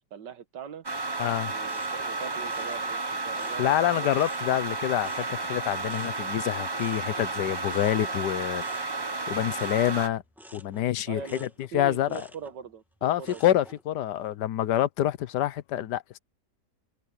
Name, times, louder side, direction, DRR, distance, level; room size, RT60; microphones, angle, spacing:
voice 1, 0.1-0.8 1.5-4.1 11.1-13.4, right 7 dB, 90° right, 1.9 m, -41 dB
sound 1, 0.8-10.1, right 3 dB, 25° right, 0.6 m, -32 dB
voice 2, 1.2-1.5 3.6-8.6 9.0-10.2 10.5-11.5 11.7-12.3 13.0-16.2, left 12 dB, 80° left, 1.4 m, -27 dB
sound 2, 1.6-4.7 5.0-13.8 14.2-14.7, equal, ahead, 2.2 m, -52 dB
omnidirectional pair, 1.8 m